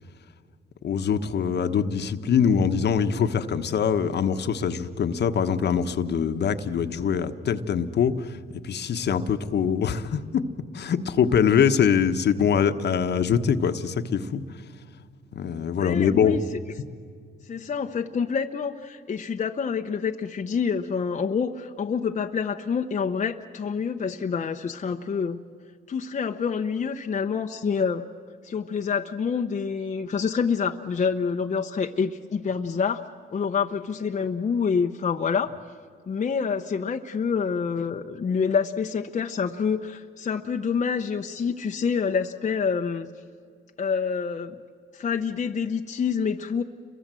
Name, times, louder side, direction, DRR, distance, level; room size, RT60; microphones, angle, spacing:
voice 1, 0.8-8.4 8.6-10.4 10.7-14.4 15.3-16.4, left 7 dB, 60° left, 9 dB, 1.3 m, -23 dB
voice 2, 15.8-16.4 17.5-25.4 25.9-28.0 28.4-35.5 36.1-43.1 43.8-44.6 44.9-46.6, left 6 dB, 35° left, 4 dB, 0.9 m, -27 dB
30.0 x 23.0 x 7.7 m, 2.1 s
cardioid pair, 90°, 20 cm